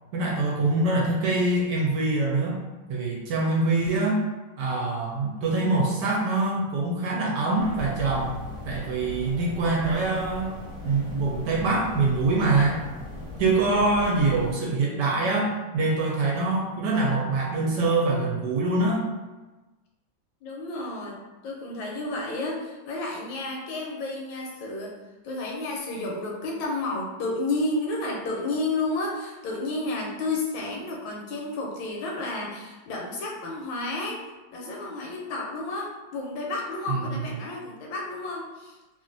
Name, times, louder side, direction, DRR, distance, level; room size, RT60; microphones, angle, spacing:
voice 1, 0.1-2.6 2.9-4.2 4.6-8.4 8.7-10.5 10.8-12.8 13.4-19.0 36.9-37.2, right 2 dB, 75° right, -3 dB, 1.1 m, -24 dB
sound 1, 7.6-14.5, left 2 dB, 25° right, 0.7 m, -38 dB
voice 2, 20.4-24.9 25.2-34.2 34.5-38.8, left 2 dB, 85° left, -1 dB, 1.4 m, -31 dB
3.0 x 2.5 x 2.5 m, 1.2 s
omnidirectional pair, 2.1 m